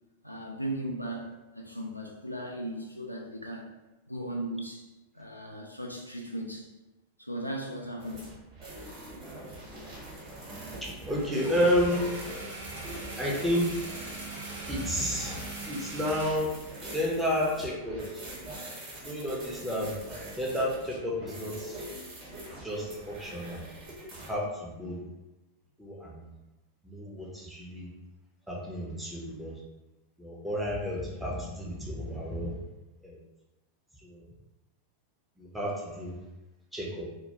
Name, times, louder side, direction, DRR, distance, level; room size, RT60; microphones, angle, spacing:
voice 1, 0.2-3.7 4.1-4.9 5.1-6.7 7.2-8.4, right 1 dB, 90° left, 0 dB, 0.3 m, -37 dB
sound 1, 8.0-24.3, right 1 dB, 35° right, 0.9 m, -43 dB
voice 2, 9.9-12.1 13.2-13.8 14.7-15.4 15.7-16.5 16.9-18.5 19.0-19.9 20.4-21.8 22.6-23.7 24.1-25.0 25.8-26.2 26.8-27.9 28.5-29.5 30.2-32.5 33.0-33.2 34.0-34.2 35.4-36.2 36.7-37.0, equal, 5° right, -3 dB, 0.6 m, -31 dB
sound 2, 11.3-16.3, right 2 dB, 65° right, 0.7 m, -41 dB
2.2 x 2.1 x 2.9 m, 1.1 s
figure-of-eight pair, 90°, 0 cm